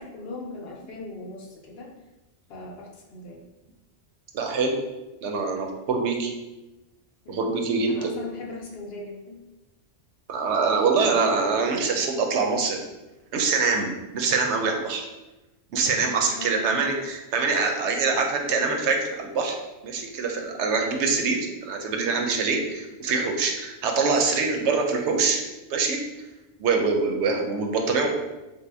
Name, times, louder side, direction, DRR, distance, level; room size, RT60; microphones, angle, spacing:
voice 1, 0.0-1.9 2.5-3.5 7.2-9.4 11.0-11.3 16.2-16.8 24.6-24.7, left 2 dB, 65° left, 0 dB, 0.8 m, -39 dB
voice 2, 4.3-4.8 5.2-6.3 7.3-8.1 10.3-12.8 13.3-15.1 15.7-19.6 19.8-25.4 25.7-26.0 26.6-28.1, right 4 dB, 85° right, 3 dB, 0.9 m, -24 dB
3.5 x 2.2 x 3.3 m, 1.0 s
omnidirectional pair, 1.1 m